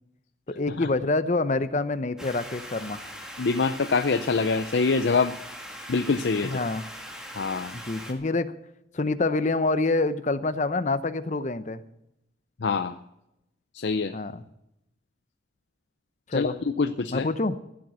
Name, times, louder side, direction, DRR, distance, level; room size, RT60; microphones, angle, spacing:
voice 1, 0.5-3.0 6.4-6.8 7.7-8.5 8.9-11.8 14.1-14.4 16.3-16.5 17.1-17.6, left 3 dB, 40° left, 12 dB, 0.7 m, -26 dB
sound 1, 2.2-8.1, equal, 5° right, 1.9 m, -41 dB
voice 2, 3.4-5.4 5.9-6.6 7.4-7.7 12.6-13.0 13.7-14.1 16.3-17.3, left 4 dB, 75° left, 9 dB, 0.6 m, -25 dB
15.5 x 7.8 x 8.1 m, 0.84 s
head